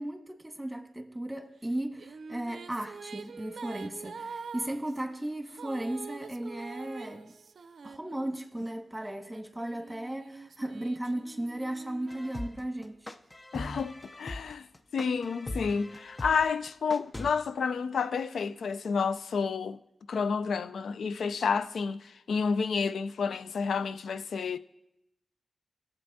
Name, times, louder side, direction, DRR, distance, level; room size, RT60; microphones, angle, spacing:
voice 1, 0.0-7.3 7.8-13.1, right 1 dB, 15° right, 1.5 m, -36 dB
Female singing, 1.7-8.6 9.3-13.0, right 5 dB, 75° right, 0.4 m, -46 dB
sound 1, 12.1-17.3, left 2 dB, 30° left, 0.6 m, -40 dB
voice 2, 13.5-14.7 14.9-19.8 20.1-24.6, left 5 dB, 85° left, 0.4 m, -30 dB
17.5 x 8.0 x 2.7 m
cardioid pair, 45°, 0 cm